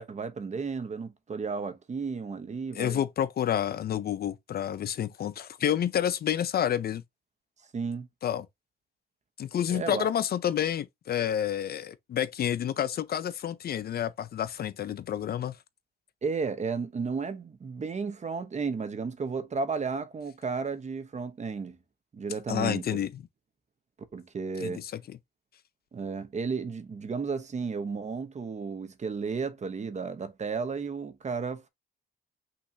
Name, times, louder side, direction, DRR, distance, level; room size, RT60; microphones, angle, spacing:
voice 1, 0.0-3.0 7.7-8.1 9.7-10.1 16.2-21.8 22.1-23.0 24.1-24.8 25.9-31.7, right 5 dB, 35° right, 1.0 m, -33 dB
voice 2, 2.8-7.0 8.2-8.5 9.4-15.6 22.5-23.1 24.6-25.2, left 10 dB, 50° left, 0.5 m, -29 dB
5.8 x 3.1 x 2.7 m
cardioid pair, 90°, 20 cm